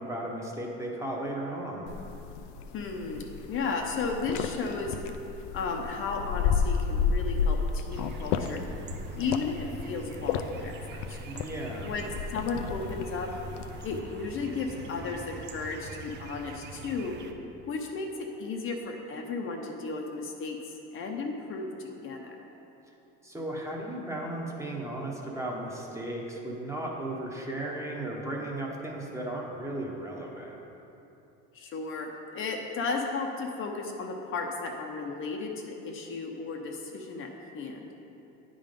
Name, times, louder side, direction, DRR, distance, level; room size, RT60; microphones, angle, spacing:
voice 1, 0.0-1.9 11.3-11.9 23.2-30.6, right 1 dB, 10° right, -2 dB, 1.0 m, -35 dB
sound 1, 1.9-14.0, left 6 dB, 75° left, 0.5 m, -32 dB
voice 2, 2.7-4.9 5.5-8.6 9.1-11.2 11.8-13.3 13.8-17.2 17.7-20.6 20.9-22.4 31.5-37.3 37.5-37.9, left 4 dB, 45° left, 2 dB, 0.7 m, -34 dB
sound 2, 7.9-17.3, right 4 dB, 35° right, 0.6 m, -44 dB
9.4 x 3.8 x 5.2 m, 2.9 s
supercardioid pair, 115°, 30 cm